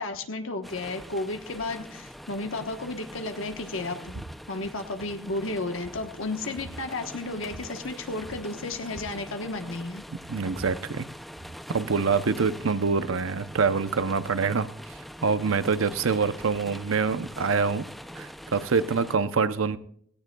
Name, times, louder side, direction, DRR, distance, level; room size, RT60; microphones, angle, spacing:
voice 1, 0.0-10.0, left 2 dB, 75° left, 5 dB, 1.2 m, -33 dB
sound 1, 0.6-19.1, equal, ahead, 0.4 m, -43 dB
sound 2, 4.1-4.3 4.6-5.1 5.5-5.6 5.8-6.8 7.4-7.6 7.9-8.0 8.2-9.9 10.2-11.6, right 1 dB, 50° right, 1.1 m, -44 dB
voice 2, 10.3-11.1 11.7-14.7 15.2-17.9 18.2-19.8, right 5 dB, 80° right, 12 dB, 0.7 m, -25 dB
17.0 x 17.0 x 2.3 m, 0.65 s
head